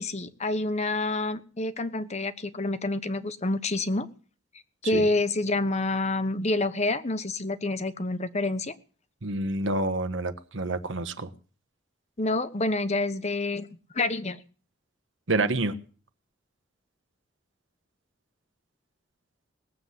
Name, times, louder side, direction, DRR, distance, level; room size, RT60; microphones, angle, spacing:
voice 1, 0.0-4.1 4.8-8.7 12.2-13.7 13.9-14.4, left 2 dB, 35° left, 12 dB, 1.1 m, -28 dB
voice 2, 9.2-11.3 15.3-15.8, right 2 dB, 75° right, 9 dB, 1.3 m, -28 dB
19.0 x 7.7 x 8.2 m, 0.40 s
head